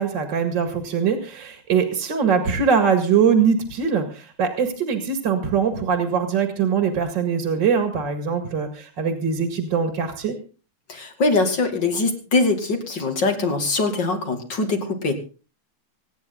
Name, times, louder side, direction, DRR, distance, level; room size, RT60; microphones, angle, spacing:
voice 1, 0.0-10.3, right 6 dB, 60° right, 6 dB, 2.7 m, -22 dB
voice 2, 10.9-15.2, left 3 dB, 55° left, 5 dB, 3.2 m, -22 dB
25.5 x 9.9 x 3.9 m, 0.35 s
omnidirectional pair, 2.3 m